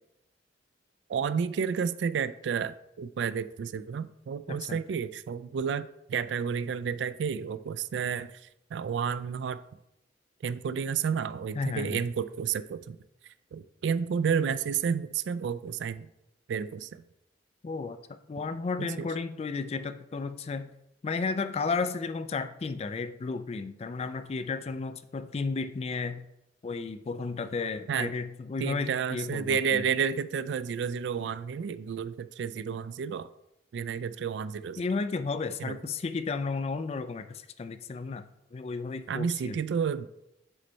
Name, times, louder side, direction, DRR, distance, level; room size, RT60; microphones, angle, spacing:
voice 1, 1.1-8.4 8.7-9.6 10.4-13.0 13.5-16.1 16.5-17.0 18.8-18.9 27.9-28.1 28.6-33.3 33.7-34.8 35.6-35.7 39.1-40.1, right 7 dB, 70° right, 14 dB, 0.3 m, -31 dB
voice 2, 4.5-4.8 11.6-12.0 17.6-20.7 21.0-26.3 26.6-29.8 34.8-39.6, left 4 dB, 35° left, 11 dB, 0.3 m, -33 dB
6.2 x 4.0 x 4.4 m, 0.86 s
head